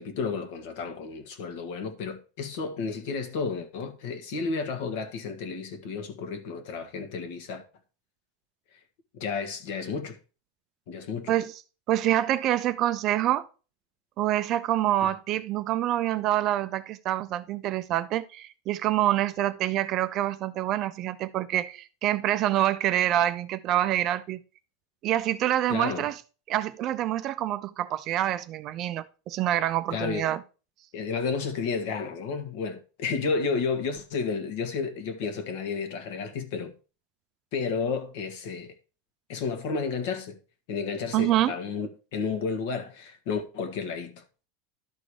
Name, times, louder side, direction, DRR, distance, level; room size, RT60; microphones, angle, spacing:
voice 1, 0.0-7.6 9.1-10.2 10.9-11.3 15.0-15.1 25.7-26.0 29.9-30.3 30.9-36.7 37.5-38.7 39.3-40.4 40.7-44.2, left 5 dB, 55° left, 1.6 m, -32 dB
voice 2, 11.9-13.5 14.2-24.4 25.0-26.2 26.5-30.4 41.1-41.6, right 13 dB, 35° right, 0.5 m, -26 dB
12.0 x 4.0 x 4.8 m
supercardioid pair, 165°, 0 cm